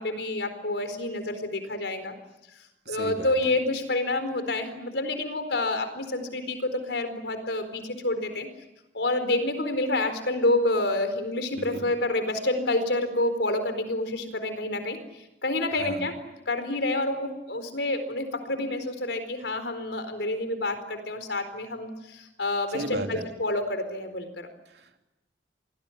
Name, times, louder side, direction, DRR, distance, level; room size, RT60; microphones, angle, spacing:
voice 1, 0.0-2.1 2.9-8.5 8.9-15.0 15.4-16.2 16.5-24.5, left 2 dB, 85° left, 8 dB, 4.4 m, -28 dB
voice 2, 2.8-3.3 11.6-11.8 15.7-16.1 22.7-23.3 24.7-25.0, right 2 dB, 70° right, 4 dB, 3.2 m, -35 dB
27.0 x 20.0 x 10.0 m, 0.99 s
head